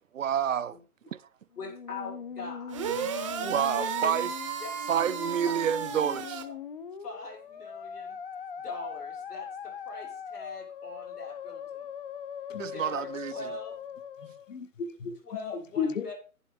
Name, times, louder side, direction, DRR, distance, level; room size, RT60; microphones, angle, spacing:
voice 1, 0.1-0.8 1.1-1.3 3.4-4.3 4.9-6.5 12.6-13.5, right 9 dB, 55° right, 0.6 m, -29 dB
Musical instrument, 1.5-14.5, left 7 dB, 35° left, 0.6 m, -41 dB
voice 2, 1.6-2.8 3.8-4.1 4.6-4.7 5.5-5.6 7.0-8.2 8.6-11.9 12.7-14.0 15.2-16.1, left 3 dB, 85° left, 6.7 m, -42 dB
sound 1, 2.7-6.4, right 8 dB, 20° right, 0.8 m, -34 dB
voice 3, 14.2-16.1, left 6 dB, 55° left, 1.5 m, -34 dB
11.0 x 10.5 x 3.3 m
hypercardioid pair, 155°, 45 cm